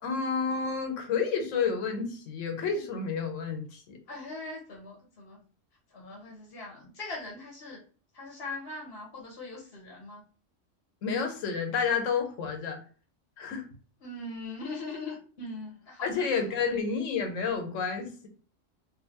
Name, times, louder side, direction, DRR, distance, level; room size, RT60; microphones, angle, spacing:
voice 1, 0.0-4.0 11.0-12.8 13.4-13.7 16.0-18.3, left 5 dB, 80° left, 5 dB, 1.0 m, -30 dB
voice 2, 4.1-5.4 5.9-7.8 8.1-10.2 14.0-16.3, left 2 dB, 55° left, -1 dB, 0.9 m, -41 dB
2.5 x 2.5 x 2.8 m, 0.41 s
omnidirectional pair, 1.3 m